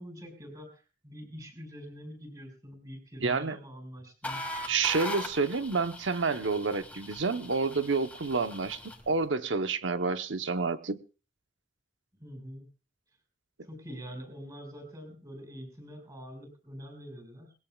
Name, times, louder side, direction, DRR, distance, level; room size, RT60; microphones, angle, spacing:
voice 1, 0.0-4.4 12.2-12.7 13.6-17.5, equal, 20° right, 4 dB, 5.5 m, -45 dB
voice 2, 3.2-3.6 4.7-8.8 9.1-11.0, right 4 dB, 80° right, 10 dB, 0.9 m, -29 dB
sound 1, 4.2-9.1, left 1 dB, 10° left, 1.8 m, -40 dB
20.5 x 17.5 x 2.3 m, 0.33 s
head